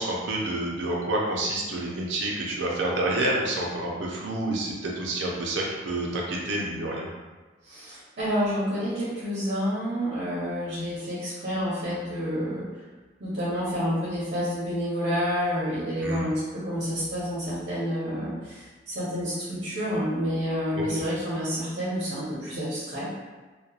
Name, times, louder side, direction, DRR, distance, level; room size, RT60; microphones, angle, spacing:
voice 1, 0.0-7.1 16.0-16.3 20.8-21.0, right 2 dB, 85° right, -2 dB, 0.5 m, -28 dB
voice 2, 7.6-12.7 13.2-23.1, equal, 55° right, -9 dB, 0.8 m, -29 dB
2.8 x 2.1 x 2.3 m, 1.3 s
head